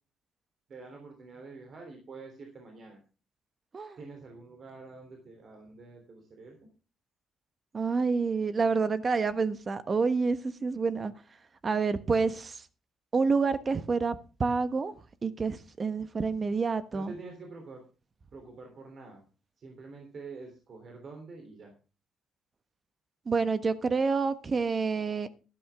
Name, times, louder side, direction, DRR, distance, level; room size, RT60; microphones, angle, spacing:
voice 1, 0.7-3.0 4.0-6.6 16.9-17.8 18.3-19.3 19.6-21.7, right 4 dB, 50° right, 3.5 m, -47 dB
voice 2, 7.7-11.1 11.6-12.6 13.1-14.9 15.2-17.1 23.3-25.3, right 4 dB, 35° right, 1.3 m, -28 dB
12.5 x 12.0 x 3.6 m
cardioid pair, 90°, 0 cm